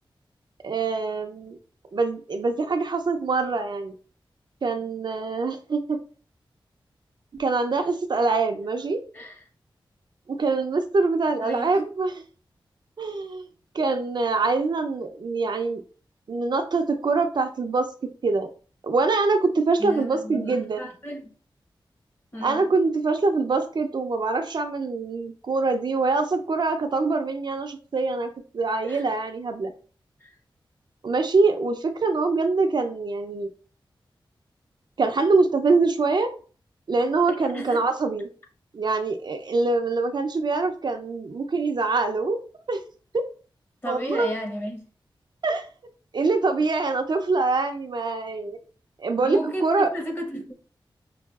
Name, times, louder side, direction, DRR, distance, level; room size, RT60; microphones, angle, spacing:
voice 1, 0.6-1.6 1.9-3.9 4.6-6.0 7.4-9.0 10.3-12.2 13.0-13.5 13.7-15.8 16.3-17.9 18.2-18.5 18.8-20.8 22.4-29.7 31.0-33.5 35.0-36.3 36.9-38.3 38.7-42.4 42.7-42.8 43.1-43.3 43.9-44.3 45.4-45.7 46.1-48.6 49.0-49.9, right 3 dB, 60° right, 0.5 m, -24 dB
voice 2, 9.1-9.4 11.4-11.8 19.8-21.3 22.3-22.8 28.8-29.0 30.2-30.4 37.3-37.8 43.8-44.8 49.2-50.5, equal, 25° left, 1.0 m, -34 dB
5.4 x 2.3 x 2.3 m
wide cardioid pair, 80°, 9 cm